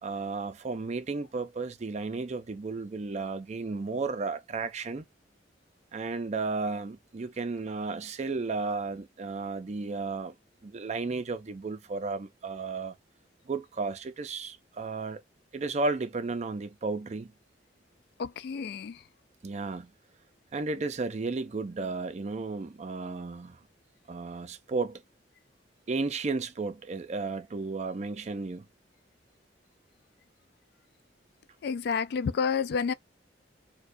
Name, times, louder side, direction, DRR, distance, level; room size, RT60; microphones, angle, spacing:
voice 1, 0.0-5.1 5.9-10.3 10.6-13.0 13.5-15.2 15.5-17.3 19.4-19.9 20.5-23.6 24.1-25.0 25.9-28.7, right 3 dB, 40° right, 0.5 m, -33 dB
voice 2, 18.2-19.0 31.6-32.9, left 6 dB, 60° left, 0.3 m, -29 dB
4.5 x 2.2 x 2.6 m
head